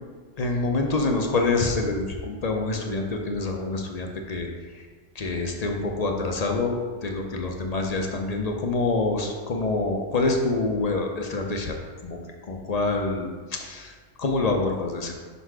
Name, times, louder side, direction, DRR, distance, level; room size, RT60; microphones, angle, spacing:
voice 1, 0.4-4.5 5.2-6.8 7.0-11.7 12.0-12.2 12.5-13.9 14.2-15.2, left 3 dB, 40° left, 2 dB, 0.6 m, -26 dB
5.4 x 4.1 x 4.7 m, 1.5 s
omnidirectional pair, 1.3 m